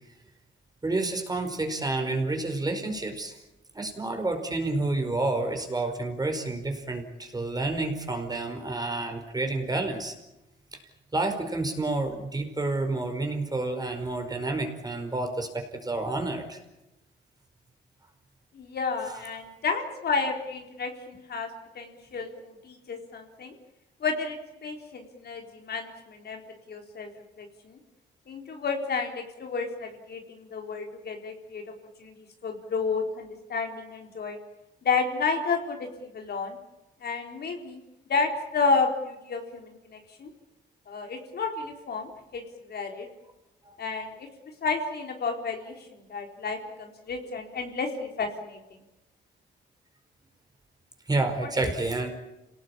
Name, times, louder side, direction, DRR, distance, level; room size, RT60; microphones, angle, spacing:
voice 1, 0.8-3.4 3.7-10.1 10.7-10.8 11.1-16.6 19.1-19.2 43.7-43.8 51.1-52.1, right 2 dB, 20° right, 6 dB, 5.0 m, -29 dB
voice 2, 18.5-21.5 21.7-23.5 24.0-26.4 26.7-27.1 27.4-27.8 28.3-31.6 32.0-34.4 34.8-36.6 37.0-37.8 38.1-40.3 40.9-42.4 42.7-43.1 43.8-44.3 44.6-48.6 51.4-51.7, left 4 dB, 55° left, 3 dB, 4.0 m, -31 dB
27.5 x 18.5 x 8.7 m, 0.93 s
cardioid pair, 90°, 20 cm